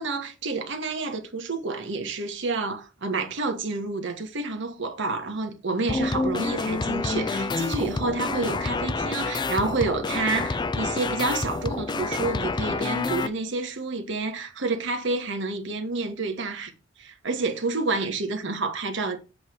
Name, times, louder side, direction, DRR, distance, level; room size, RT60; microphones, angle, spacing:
voice 1, 0.0-16.7 17.0-19.2, right 3 dB, 65° right, 1.3 m, -29 dB
sound 1, 5.9-13.3, left 3 dB, 25° left, 0.4 m, -28 dB
7.6 x 3.2 x 6.3 m
head